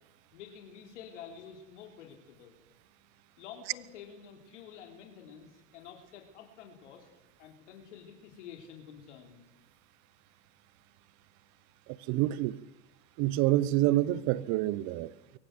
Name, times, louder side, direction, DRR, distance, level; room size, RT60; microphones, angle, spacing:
voice 1, 0.3-2.6 3.4-7.1 7.4-9.4, left 8 dB, 75° left, 3.7 m, -49 dB
voice 2, 11.9-12.6 13.2-15.4, right 15 dB, 50° right, 0.9 m, -28 dB
23.0 x 15.5 x 7.8 m
hypercardioid pair, 105°, 36 cm